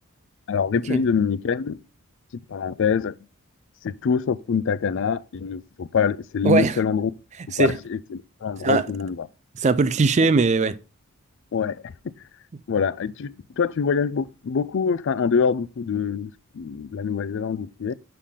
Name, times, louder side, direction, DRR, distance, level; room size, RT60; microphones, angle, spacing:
voice 1, 0.5-1.8 2.5-3.1 3.8-7.1 7.6-9.3 11.5-11.9 12.7-17.9, left 6 dB, 55° left, 0.4 m, -25 dB
voice 2, 6.4-6.8 7.5-7.8 8.6-8.9 9.6-10.8, right 4 dB, 30° right, 0.4 m, -20 dB
6.6 x 5.7 x 3.6 m
head